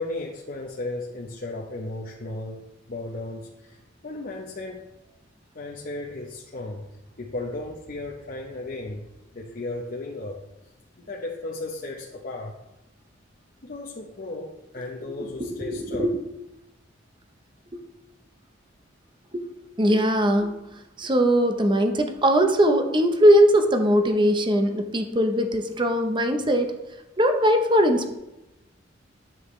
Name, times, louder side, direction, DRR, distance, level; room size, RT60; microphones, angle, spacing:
voice 1, 0.0-4.8 5.5-10.4 11.0-12.6 13.6-16.1, left 2 dB, 50° left, -2 dB, 0.8 m, -35 dB
voice 2, 15.4-16.2 17.7-17.8 19.3-19.4 19.8-20.6 21.0-26.8 27.2-28.1, equal, 25° right, 5 dB, 0.8 m, -20 dB
9.8 x 7.2 x 3.2 m, 0.95 s
head